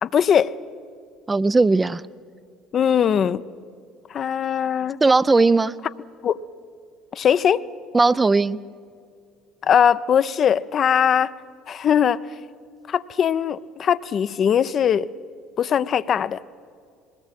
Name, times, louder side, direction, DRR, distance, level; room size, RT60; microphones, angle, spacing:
voice 1, 0.0-0.5 2.7-3.4 4.1-5.0 6.2-6.4 7.1-7.6 9.6-11.3 11.7-12.2 12.9-15.1 15.6-16.4, left 8 dB, 45° left, 14 dB, 0.5 m, -20 dB
voice 2, 1.3-2.0 5.0-5.7 7.9-8.6, right 3 dB, 20° right, 16 dB, 0.4 m, -17 dB
21.0 x 18.0 x 7.6 m, 2.3 s
figure-of-eight pair, 60°, 0 cm